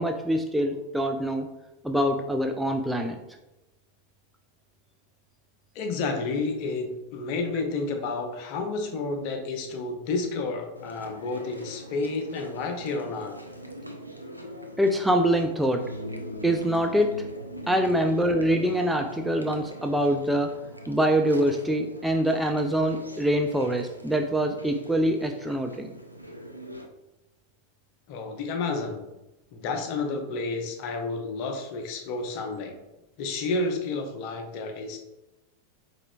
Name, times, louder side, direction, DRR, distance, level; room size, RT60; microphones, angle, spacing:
voice 1, 0.0-1.5 1.8-3.2 14.8-15.8 16.4-17.2 17.7-20.5 20.9-25.9, equal, 5° right, 3 dB, 0.3 m, -24 dB
voice 2, 5.7-13.3 28.1-29.0 29.5-32.7 33.2-35.0, left 3 dB, 45° left, 4 dB, 0.7 m, -30 dB
Chewing mastication, 10.8-26.9, equal, 90° right, 0.4 m, -44 dB
sound 1, 15.8-22.6, equal, 85° left, 0.4 m, -42 dB
4.8 x 4.1 x 2.2 m, 0.99 s
figure-of-eight pair, 90°, 0 cm